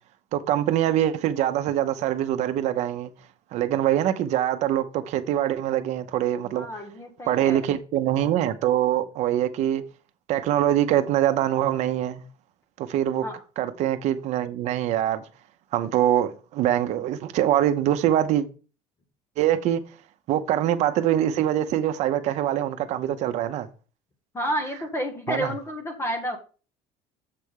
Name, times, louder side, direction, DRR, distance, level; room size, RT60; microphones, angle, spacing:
voice 1, 0.3-3.1 3.5-6.7 7.3-9.8 10.3-12.2 12.8-13.2 13.6-15.3 15.7-18.5 19.4-19.8 20.3-23.7 25.3-25.5, right 11 dB, 50° right, 0.8 m, -24 dB
voice 2, 6.5-7.7 13.2-13.4 24.3-26.4, equal, 20° left, 1.2 m, -30 dB
7.6 x 3.5 x 6.4 m
cardioid pair, 160°, 14 cm